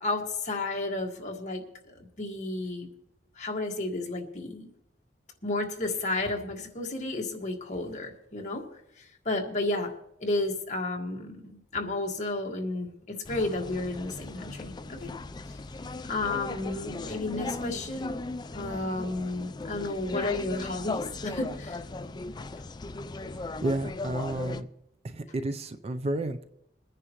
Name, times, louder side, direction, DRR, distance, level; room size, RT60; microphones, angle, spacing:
voice 1, 0.0-2.9 3.4-4.7 5.4-8.6 9.0-9.9 10.2-15.1 16.1-18.2 18.5-21.8, left 2 dB, 45° left, 1 dB, 1.7 m, -32 dB
sound 1, 13.2-24.6, left 3 dB, 25° left, 0.4 m, -37 dB
voice 2, 23.3-24.7 25.0-26.4, right 1 dB, 35° right, 9 dB, 0.5 m, -32 dB
22.5 x 10.0 x 3.0 m, 0.80 s
head